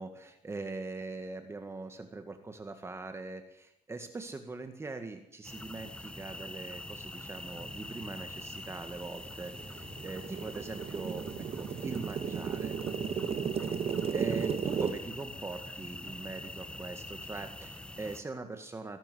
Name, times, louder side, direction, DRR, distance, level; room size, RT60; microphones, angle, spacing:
voice 1, 0.0-12.8 13.6-19.0, right 3 dB, 20° right, 6 dB, 1.9 m, -42 dB
sound 1, 5.4-18.2, left 1 dB, 5° left, 1.2 m, -44 dB
sound 2, 8.4-8.5 9.0-14.9, right 7 dB, 45° right, 1.6 m, -34 dB
23.0 x 12.0 x 9.5 m, 0.79 s
cardioid pair, 115°, 13 cm